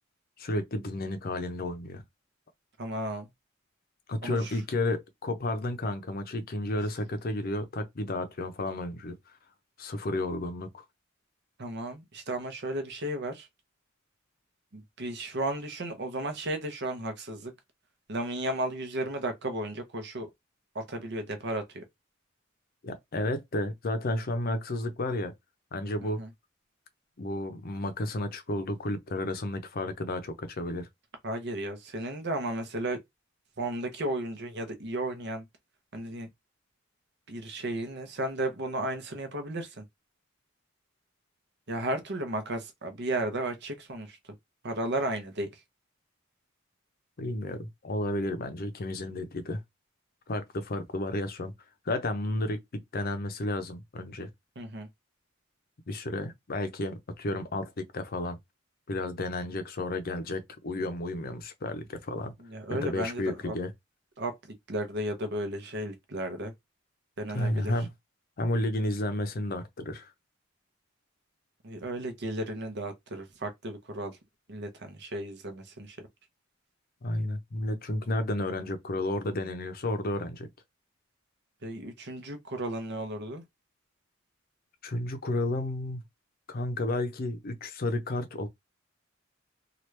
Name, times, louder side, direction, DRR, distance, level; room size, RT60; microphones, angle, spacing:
voice 1, 0.4-2.0 4.1-9.2 9.8-10.8 22.8-25.3 25.7-26.2 27.2-30.9 47.2-49.6 50.3-51.5 51.9-52.6 52.9-54.3 55.9-58.4 58.9-62.3 62.7-63.7 67.3-67.9 68.4-70.1 77.0-80.5 84.8-86.0 86.5-88.5, left 1 dB, 45° left, 0.6 m, -32 dB
voice 2, 2.8-3.3 4.2-4.5 11.6-13.5 14.7-17.5 18.1-20.3 20.7-21.8 26.0-26.3 31.2-33.0 33.6-35.4 35.9-36.3 37.3-39.8 41.7-44.2 44.6-45.5 54.6-54.9 62.5-63.5 64.2-64.4 64.7-66.5 67.2-67.7 71.6-74.2 74.5-76.0 81.6-83.4, right 1 dB, 55° right, 0.9 m, -34 dB
3.0 x 2.4 x 3.2 m
head